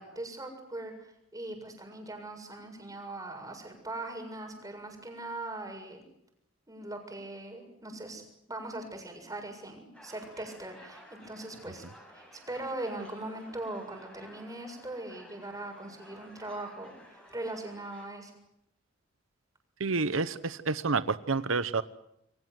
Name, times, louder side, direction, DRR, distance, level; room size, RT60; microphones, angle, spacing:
voice 1, 0.0-6.0 6.7-8.2 8.5-11.8 12.1-18.3, right 2 dB, 20° right, 4 dB, 7.3 m, -40 dB
sound 1, 9.9-18.1, equal, 5° left, 7.3 m, -54 dB
voice 2, 19.8-21.8, right 4 dB, 90° right, 14 dB, 1.0 m, -29 dB
28.5 x 24.0 x 8.0 m, 0.80 s
head